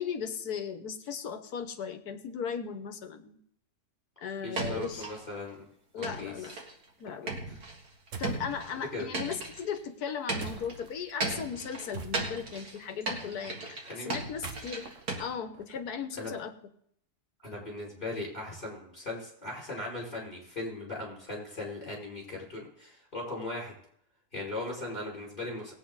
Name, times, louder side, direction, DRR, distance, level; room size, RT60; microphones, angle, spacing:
voice 1, 0.0-3.4 4.2-5.1 5.9-6.6 7.0-7.3 8.2-14.8 15.2-16.5, left 7 dB, 80° left, 8 dB, 1.5 m, -37 dB
voice 2, 4.4-5.6 6.0-6.3 7.2-7.6 8.9-9.1 13.9-14.2 16.2-16.3 17.4-23.8 24.3-25.7, left 2 dB, 30° left, -3 dB, 5.6 m, -38 dB
sound 1, 4.6-5.2 6.0-6.8 7.3-9.8 10.3-15.2, right 3 dB, 85° right, 2.6 m, -36 dB
sound 2, 8.1-8.5 10.4-10.9 11.9-12.6 14.2-16.2, right 5 dB, 55° right, 1.3 m, -44 dB
19.0 x 8.6 x 4.0 m, 0.67 s
omnidirectional pair, 1.6 m